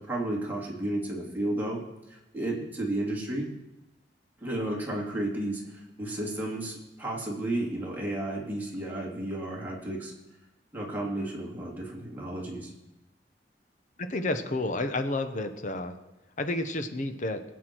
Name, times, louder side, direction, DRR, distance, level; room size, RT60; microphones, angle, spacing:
voice 1, 0.0-1.8 2.3-3.5 4.4-5.6 6.0-10.1 10.7-12.7, right 1 dB, 10° right, -3 dB, 2.8 m, -32 dB
voice 2, 14.0-16.0 16.4-17.4, left 2 dB, 45° left, 8 dB, 1.0 m, -30 dB
19.5 x 8.4 x 4.6 m, 0.96 s
head